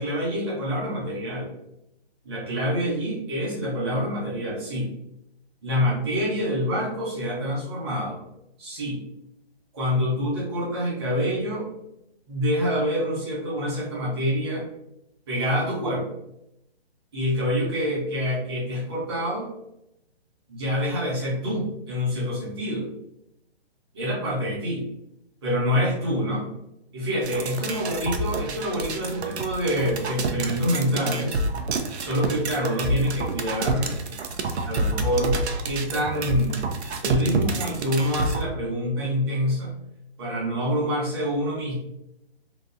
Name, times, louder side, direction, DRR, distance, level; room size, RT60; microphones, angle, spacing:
voice 1, 0.0-1.5 2.2-4.9 5.6-8.2 8.6-9.0 9.7-11.7 12.3-14.7 15.3-16.0 17.1-19.5 20.5-22.9 23.9-24.8 25.4-26.5 26.9-31.4 32.0-33.9 34.6-35.4 35.6-36.6 37.0-39.7 40.2-41.7, equal, 25° right, -6 dB, 0.9 m, -26 dB
sound 1, 27.2-38.4, right 2 dB, 90° right, 0.6 m, -28 dB
2.9 x 2.4 x 2.5 m, 0.83 s
hypercardioid pair, 165°, 32 cm